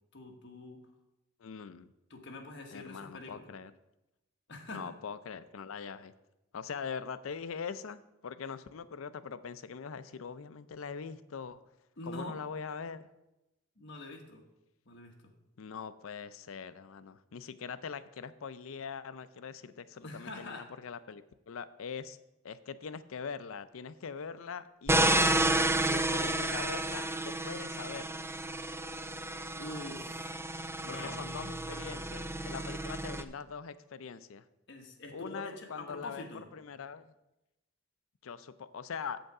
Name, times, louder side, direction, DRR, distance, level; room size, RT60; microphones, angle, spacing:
voice 1, 0.1-0.8 2.1-3.5 4.5-4.9 12.0-12.4 13.8-14.4 14.8-15.3 20.0-20.7 29.6-30.4 30.8-31.3 34.7-36.5, left 2 dB, 60° left, 2 dB, 1.3 m, -45 dB
voice 2, 1.4-1.9 2.7-3.7 4.7-6.1 6.5-11.6 12.1-13.1 15.6-22.2 22.4-28.1 30.9-34.4 35.1-36.3 36.5-37.1 38.2-39.2, left 6 dB, 85° left, 14 dB, 0.5 m, -42 dB
sound 1, 24.9-33.2, right 1 dB, 10° right, 0.3 m, -31 dB
7.9 x 7.7 x 4.8 m, 0.92 s
head